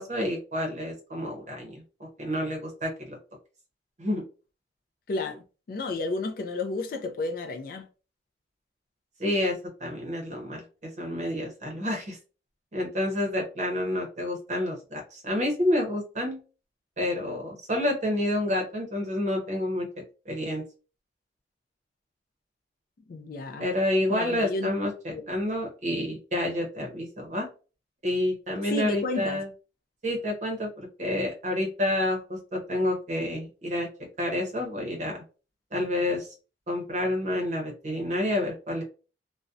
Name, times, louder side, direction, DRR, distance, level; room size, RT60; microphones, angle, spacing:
voice 1, 0.0-1.7 2.0-3.2 4.0-4.2 9.2-12.2 12.7-16.4 17.0-19.9 20.3-20.6 23.6-27.5 28.0-29.5 30.0-33.9 34.2-35.2 35.7-36.3 36.7-38.8, left 1 dB, 40° right, 0.7 m, -29 dB
voice 2, 5.1-7.9 23.1-23.7 24.1-24.7 25.1-25.2 28.7-29.4, left 2 dB, 50° left, 0.3 m, -32 dB
2.6 x 2.0 x 2.3 m
head